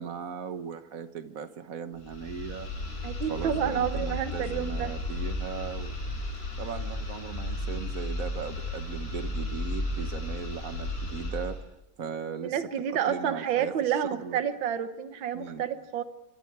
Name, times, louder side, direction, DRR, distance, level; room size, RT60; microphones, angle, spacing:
voice 1, 0.0-2.7 3.3-5.9 6.6-11.6 12.0-12.6 13.1-14.4 15.3-15.7, right 6 dB, 50° right, 9 dB, 1.6 m, -38 dB
sound 1, 2.0-11.6, left 1 dB, 30° left, 5.9 m, -34 dB
voice 2, 3.0-4.9 12.4-16.0, right 9 dB, 75° right, 10 dB, 1.8 m, -29 dB
26.5 x 25.5 x 4.8 m, 0.96 s
omnidirectional pair, 2.1 m